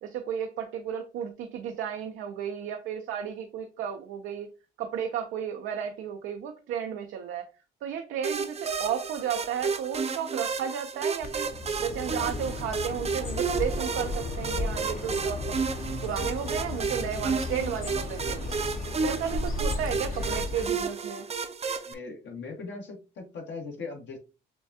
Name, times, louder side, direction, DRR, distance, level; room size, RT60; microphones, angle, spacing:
voice 1, 0.0-4.5 4.8-7.5 7.8-11.5 11.8-15.6 16.0-18.5 19.0-21.3, right 8 dB, 90° right, 5 dB, 0.6 m, -33 dB
sound 1, 8.2-21.9, right 5 dB, 30° right, 0.6 m, -32 dB
Bird, 11.2-20.9, left 2 dB, 45° left, 0.9 m, -34 dB
voice 2, 21.8-24.2, left 4 dB, 65° left, 0 dB, 1.4 m, -39 dB
6.9 x 2.3 x 2.7 m, 0.30 s
cardioid pair, 90°, 20 cm